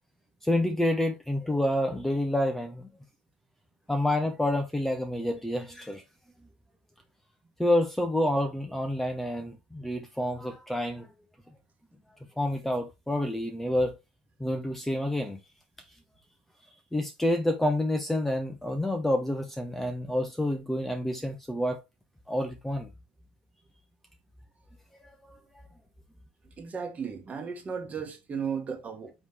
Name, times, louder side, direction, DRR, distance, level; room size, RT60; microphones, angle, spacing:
voice 1, 0.4-2.9 3.9-6.0 7.6-11.1 12.4-14.0 14.4-15.4 16.9-21.8 22.3-22.9 25.2-25.4, left 1 dB, 5° left, 0.7 m, -28 dB
voice 2, 26.4-29.1, right 6 dB, 30° right, 1.3 m, -35 dB
4.1 x 3.2 x 3.4 m
supercardioid pair, 95°, 5 cm